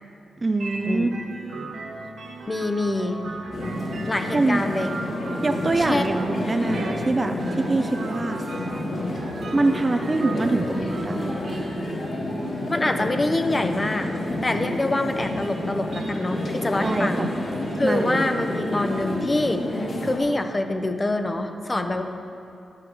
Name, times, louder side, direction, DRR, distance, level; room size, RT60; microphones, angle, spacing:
voice 1, 0.4-1.1 4.3-4.7 5.4-8.4 9.5-11.4 16.8-17.3 17.8-18.3, right 2 dB, 25° right, 6 dB, 0.5 m, -24 dB
sound 1, 0.6-19.3, right 3 dB, 70° right, 1.2 m, -39 dB
sound 2, 0.7-15.8, right 3 dB, 85° right, 1.8 m, -46 dB
voice 2, 2.5-3.2 4.1-4.9 5.8-6.0 12.7-14.1 14.4-17.3 17.8-22.0, left 2 dB, 20° left, 6 dB, 0.7 m, -25 dB
sound 3, 3.5-20.2, left 1 dB, 55° left, 2.5 m, -29 dB
11.5 x 8.2 x 6.1 m, 2.6 s
wide cardioid pair, 130°, 0 cm